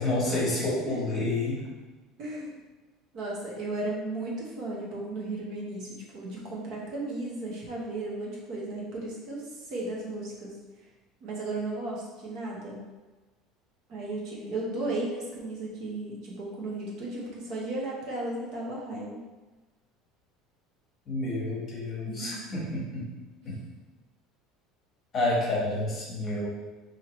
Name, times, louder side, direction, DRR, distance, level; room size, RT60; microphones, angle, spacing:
voice 1, 0.0-1.6 21.1-23.1 23.4-23.6 25.1-26.5, left 2 dB, 25° left, -4 dB, 1.2 m, -29 dB
voice 2, 2.2-2.5 3.1-9.4 9.7-10.6 11.2-12.8 13.9-19.2 22.0-22.3, right 2 dB, 50° right, -4 dB, 0.9 m, -35 dB
4.4 x 2.8 x 3.0 m, 1.2 s
cardioid pair, 165°, 0 cm